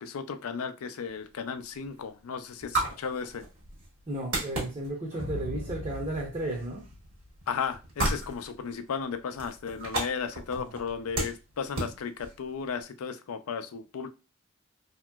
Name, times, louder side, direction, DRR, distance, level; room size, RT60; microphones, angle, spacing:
voice 1, 0.0-3.4 7.5-14.1, left 6 dB, 90° left, 0.4 m, -35 dB
sound 1, 1.0-12.8, right 2 dB, 70° right, 1.4 m, -37 dB
voice 2, 4.1-6.8 10.5-10.8, right 1 dB, 30° right, 0.6 m, -34 dB
sound 2, 5.1-7.6, left 1 dB, 85° right, 1.1 m, -40 dB
2.9 x 2.8 x 2.2 m
head